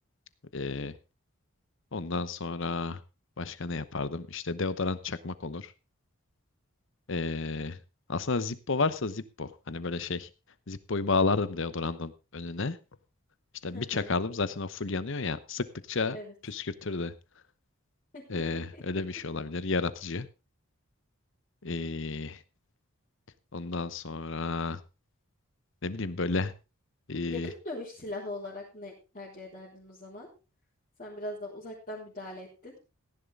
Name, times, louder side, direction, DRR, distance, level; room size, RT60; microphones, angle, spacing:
voice 1, 0.5-0.9 1.9-3.0 3.4-5.7 7.1-7.8 8.1-10.3 10.7-12.8 13.6-16.2 16.4-17.1 18.3-20.3 21.6-22.4 23.5-24.8 25.8-26.5 27.1-27.5, left 3 dB, 60° left, 15 dB, 0.9 m, -31 dB
voice 2, 13.7-14.1 16.1-16.3 18.1-18.4 18.7-18.8 27.3-30.3 31.0-32.8, left 1 dB, 35° left, -7 dB, 3.9 m, -41 dB
15.5 x 10.5 x 3.7 m, 0.29 s
head